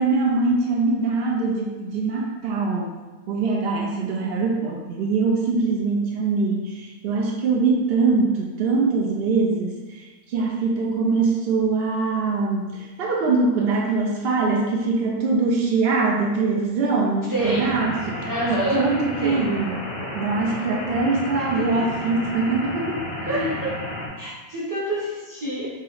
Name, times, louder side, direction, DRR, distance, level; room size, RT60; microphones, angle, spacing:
voice 1, 0.0-2.9 3.3-19.8 20.1-23.6, right 3 dB, 80° right, -1 dB, 0.5 m, -23 dB
voice 2, 17.3-17.8 18.3-18.8 19.2-19.4 21.3-21.9 23.3-23.7 24.2-25.7, right 1 dB, 20° right, -7 dB, 0.5 m, -27 dB
sound 1, 17.4-24.1, left 1 dB, 40° left, 0.4 m, -32 dB
3.1 x 2.8 x 3.9 m, 1.2 s
omnidirectional pair, 1.6 m